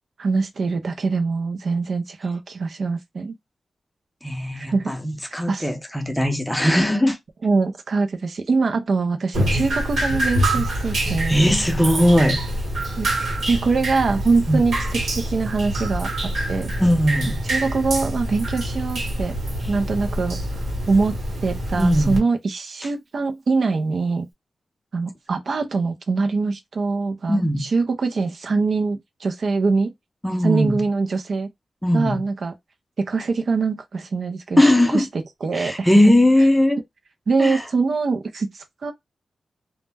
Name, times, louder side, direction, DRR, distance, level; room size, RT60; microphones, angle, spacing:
voice 1, 0.2-3.4 4.5-4.9 5.3-5.7 7.4-11.4 13.0-16.1 16.5-16.7 17.4-19.3 19.7-20.4 20.9-24.3 24.9-29.9 30.4-31.5 31.9-32.5 33.0-34.6 34.9-35.0 35.4-35.9 37.3-38.9, right 4 dB, 60° right, 0.4 m, -23 dB
voice 2, 4.2-7.2 11.3-12.4 14.5-14.6 16.8-17.3 21.8-22.2 27.3-27.7 30.2-30.8 31.8-32.2 34.6-35.1 35.5-36.8 37.4-37.6, left 1 dB, 5° left, 0.5 m, -19 dB
Drip, 9.3-22.2, right 1 dB, 85° right, 1.0 m, -26 dB
2.1 x 2.1 x 3.2 m
wide cardioid pair, 100°, 0 cm